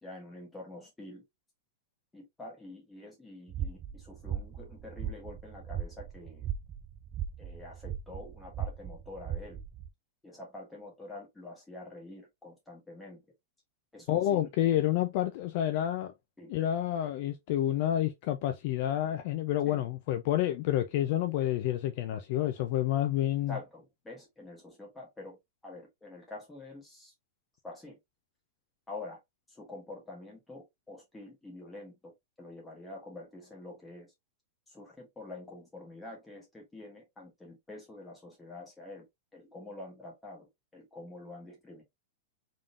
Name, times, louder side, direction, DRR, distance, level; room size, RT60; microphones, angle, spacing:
voice 1, 0.0-1.2 2.1-6.5 7.4-9.6 10.2-13.2 13.9-14.5 16.4-16.5 19.6-19.9 23.5-27.1 27.6-28.0 28.9-29.2 29.5-34.1 34.7-39.1 39.3-41.8, left 2 dB, 5° left, 1.5 m, -47 dB
sound 1, 3.5-9.9, right 9 dB, 20° right, 0.4 m, -38 dB
voice 2, 14.1-16.1 16.5-23.5, left 12 dB, 40° left, 0.4 m, -29 dB
3.7 x 3.7 x 2.4 m
supercardioid pair, 175°, 0 cm